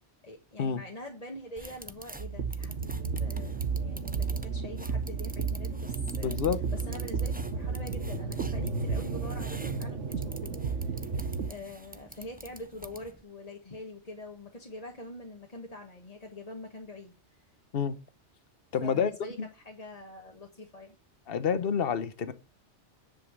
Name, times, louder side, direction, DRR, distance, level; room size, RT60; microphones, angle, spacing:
voice 1, 0.2-6.4 6.7-11.0 11.4-17.1 18.8-20.9, left 1 dB, 35° left, 1.5 m, -44 dB
sound 1, 1.6-13.2, right 1 dB, 10° right, 0.6 m, -48 dB
sound 2, 2.2-11.5, right 5 dB, 85° right, 1.4 m, -33 dB
voice 2, 6.2-6.6 17.7-18.0 18.7-19.1 19.4-19.5 21.3-22.3, left 7 dB, 55° left, 1.1 m, -28 dB
10.0 x 5.7 x 7.0 m
omnidirectional pair, 1.2 m